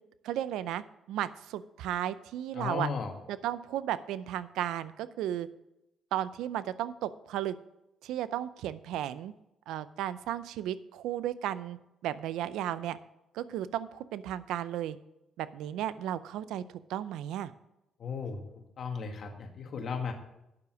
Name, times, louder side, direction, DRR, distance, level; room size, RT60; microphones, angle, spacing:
voice 1, 0.2-0.8 1.1-2.9 3.3-5.5 6.1-7.6 8.0-9.3 9.7-11.8 12.0-13.0 13.3-15.0 15.4-17.5, right 11 dB, 90° right, 16 dB, 0.5 m, -34 dB
voice 2, 2.5-3.1 18.0-20.1, left 5 dB, 55° left, 5 dB, 1.7 m, -35 dB
9.6 x 7.0 x 6.1 m, 0.88 s
cardioid pair, 90°, 0 cm